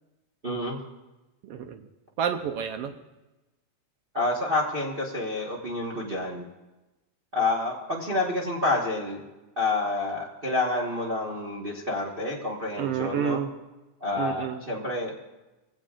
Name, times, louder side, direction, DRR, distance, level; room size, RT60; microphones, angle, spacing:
voice 1, 0.4-0.8 4.1-6.4 7.3-9.2 9.6-13.4 14.0-15.1, left 2 dB, 65° right, -2 dB, 0.5 m, -28 dB
voice 2, 1.4-1.8 2.2-2.9 12.8-13.5 14.1-14.6, right 8 dB, 80° right, 6 dB, 1.3 m, -29 dB
22.0 x 16.0 x 2.5 m, 1.1 s
omnidirectional pair, 3.6 m